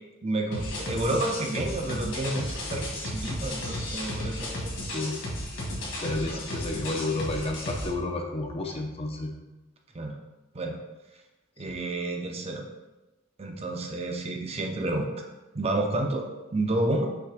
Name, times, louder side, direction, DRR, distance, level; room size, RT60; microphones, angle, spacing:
voice 1, 0.2-4.7 6.3-6.4 9.9-10.2 10.5-10.8 11.6-12.6 13.4-15.3 15.5-16.2 16.5-17.1, right 2 dB, 30° right, 2 dB, 0.6 m, -30 dB
sound 1, 0.5-7.9, left 1 dB, 60° left, 1.8 m, -34 dB
voice 2, 6.0-9.3 11.7-11.8, left 2 dB, 30° left, 2 dB, 0.5 m, -31 dB
5.8 x 3.3 x 5.0 m, 1.1 s
head